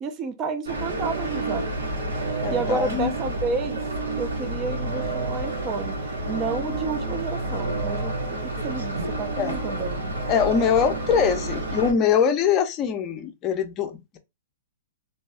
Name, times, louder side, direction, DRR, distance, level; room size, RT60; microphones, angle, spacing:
voice 1, 0.0-1.7 2.5-3.8 4.1-6.0 6.3-8.1 8.4-10.1, right 4 dB, 25° right, 0.5 m, -31 dB
sound 1, 0.7-11.9, right 2 dB, 90° right, 1.3 m, -29 dB
voice 2, 2.4-3.1 9.4-9.6 10.3-14.2, left 7 dB, 30° left, 0.5 m, -23 dB
2.6 x 2.3 x 3.4 m
hypercardioid pair, 135°, 0 cm